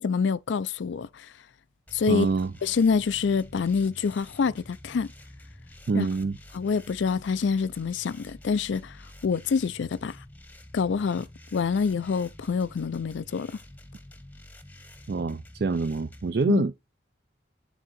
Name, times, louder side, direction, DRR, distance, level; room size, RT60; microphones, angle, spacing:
voice 1, 0.0-1.3 1.9-2.3 2.6-5.1 5.9-6.1 6.5-10.2 10.7-13.6 16.5-16.6, left 5 dB, 85° left, 0.4 m, -26 dB
sound 1, 1.9-16.5, left 1 dB, 10° left, 0.7 m, -49 dB
voice 2, 2.1-2.5 5.9-6.4 15.1-16.7, right 4 dB, 55° right, 0.4 m, -25 dB
10.0 x 3.7 x 4.2 m
head